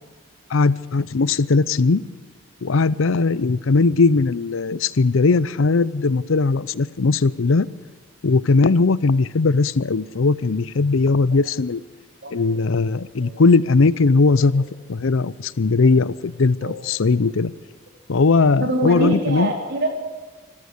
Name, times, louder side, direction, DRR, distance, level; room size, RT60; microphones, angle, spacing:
voice 1, 0.5-2.0 2.6-7.7 8.2-11.8 12.3-14.6 14.9-17.5 18.1-19.5, left 3 dB, 75° left, 19 dB, 0.6 m, -19 dB
voice 2, 12.2-12.5 13.2-13.3 16.6-16.7 18.6-20.0, right 1 dB, 55° right, 1 dB, 4.3 m, -24 dB
25.0 x 13.5 x 8.1 m, 1.3 s
head